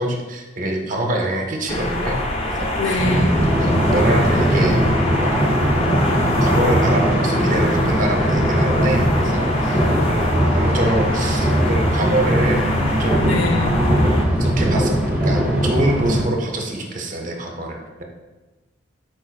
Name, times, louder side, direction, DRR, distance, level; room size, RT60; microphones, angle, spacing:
voice 1, 0.0-2.2 2.6-3.0 3.6-4.8 5.2-5.6 6.4-13.3 14.4-14.9 15.2-18.0, right 1 dB, 45° right, 1 dB, 0.6 m, -25 dB
sound 1, 1.7-14.2, left 1 dB, 30° left, 0.4 m, -25 dB
voice 2, 2.8-3.4 13.1-13.8, left 2 dB, 80° left, 3 dB, 0.6 m, -23 dB
sound 2, 3.0-16.2, equal, 10° right, 0.8 m, -19 dB
4.5 x 4.4 x 2.3 m, 1.2 s
head